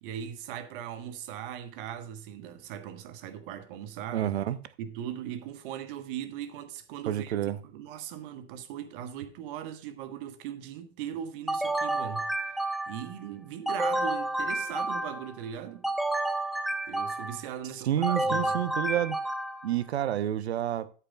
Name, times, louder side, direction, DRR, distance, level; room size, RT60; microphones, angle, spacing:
voice 1, 0.0-4.3 4.8-7.4 7.6-12.3 12.9-15.8 16.9-18.6, right 10 dB, 50° right, 1.3 m, -39 dB
voice 2, 4.1-4.6 7.1-7.6 17.8-19.2 19.6-20.9, right 11 dB, 65° right, 0.8 m, -29 dB
sound 1, 11.5-13.1 13.7-15.4 15.8-17.5 18.0-19.7, right 1 dB, ahead, 0.3 m, -30 dB
13.0 x 8.3 x 2.4 m
figure-of-eight pair, 85°, 35 cm